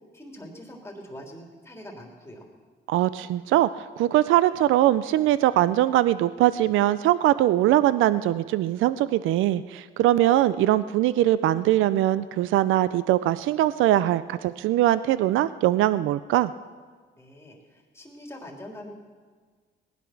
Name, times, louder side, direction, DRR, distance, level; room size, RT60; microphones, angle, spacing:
voice 1, 0.1-2.5 17.2-18.9, equal, 15° left, 0 dB, 3.4 m, -43 dB
voice 2, 2.9-16.5, right 14 dB, 85° right, 16 dB, 0.5 m, -22 dB
19.0 x 10.5 x 6.0 m, 1.5 s
cardioid pair, 90°, 20 cm